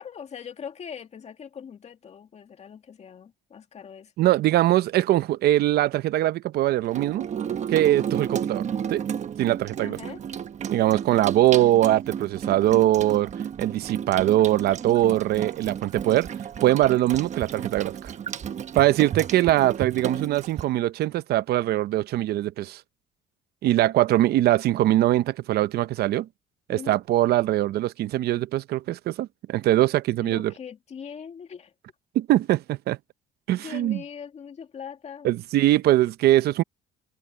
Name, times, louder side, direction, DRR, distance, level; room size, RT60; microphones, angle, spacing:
voice 1, 0.0-4.1 9.8-10.2 26.7-27.0 30.2-31.7 33.6-35.3, left 7 dB, 40° left, 2.2 m, -41 dB
voice 2, 4.2-7.3 7.7-8.6 8.9-9.0 9.4-10.0 10.7-13.3 13.6-16.3 16.6-18.1 18.7-22.8 23.6-26.3 26.7-30.5 32.1-33.0 33.5-34.0 35.2-36.6, right 14 dB, 70° right, 0.8 m, -22 dB
Water tap faucet / Sink (filling or washing), 6.8-20.6, right 8 dB, 45° right, 1.2 m, -33 dB
cardioid pair, 110°, 17 cm